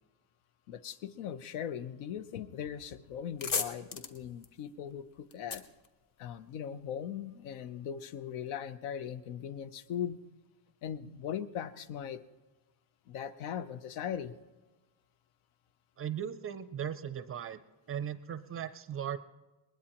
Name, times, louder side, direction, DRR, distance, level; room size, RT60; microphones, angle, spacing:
voice 1, 0.7-5.6 6.2-10.2 10.8-12.2 13.1-14.3, left 9 dB, 80° left, 13 dB, 0.9 m, -39 dB
sound 1, 2.7-2.8 3.1-6.7, left 5 dB, 45° left, 1.2 m, -38 dB
voice 2, 16.0-17.6 17.9-19.2, right 9 dB, 30° right, 13 dB, 0.4 m, -37 dB
21.0 x 20.5 x 3.0 m, 1.2 s
cardioid pair, 140°, 48 cm